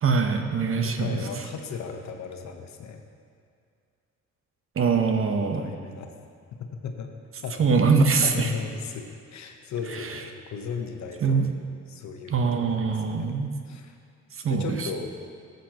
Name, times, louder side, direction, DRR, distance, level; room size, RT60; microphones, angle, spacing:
voice 1, 0.0-1.2 4.8-5.7 7.6-8.5 9.9-10.2 11.2-11.5 12.3-13.5 14.4-14.9, right 5 dB, 45° right, 5 dB, 0.9 m, -23 dB
voice 2, 0.6-3.0 5.4-6.2 6.5-7.1 7.4-7.7 8.2-11.5 11.9-13.3 13.6-14.0 14.5-15.1, left 5 dB, 65° left, 4 dB, 1.0 m, -36 dB
14.0 x 8.0 x 3.0 m, 2.3 s
cardioid pair, 90°, 30 cm